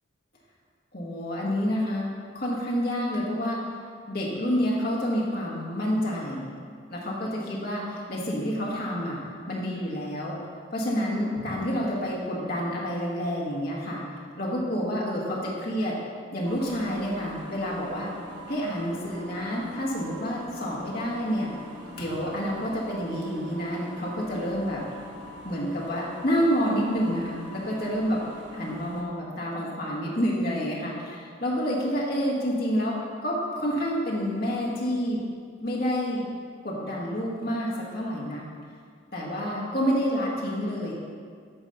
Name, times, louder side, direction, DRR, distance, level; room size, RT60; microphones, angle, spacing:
voice 1, 0.9-2.1 2.3-3.6 4.1-6.5 6.9-9.2 9.5-10.3 10.7-14.0 14.4-16.0 16.3-18.1 18.5-21.5 22.0-24.8 25.4-28.2 28.5-32.9 33.2-35.2 35.6-36.2 36.6-38.4 39.1-40.9, equal, 50° left, -5 dB, 1.5 m, -28 dB
sound 1, 16.4-29.0, equal, 65° right, 1.2 m, -43 dB
9.7 x 4.1 x 6.5 m, 2.1 s
head